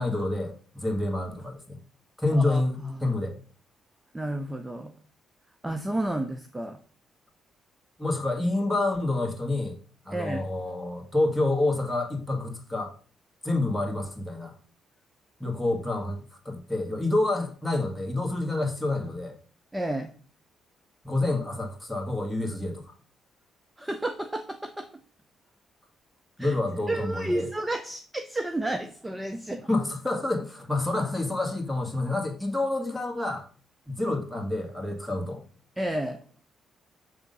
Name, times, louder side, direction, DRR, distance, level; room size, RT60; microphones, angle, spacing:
voice 1, 0.0-1.8 2.2-3.4 8.0-9.7 10.1-12.9 13.4-14.5 15.4-16.2 16.5-19.3 21.0-22.9 26.4-27.5 29.7-33.5 33.9-35.4, left 2 dB, 5° left, 1 dB, 1.9 m, -28 dB
voice 2, 2.4-3.1 4.1-4.9 5.6-6.8 10.1-10.4 19.7-20.1 23.8-24.9 26.4-26.6 26.9-29.7 35.8-36.2, right 1 dB, 15° right, 7 dB, 0.7 m, -31 dB
7.0 x 3.6 x 5.4 m, 0.42 s
cardioid pair, 90°, 0 cm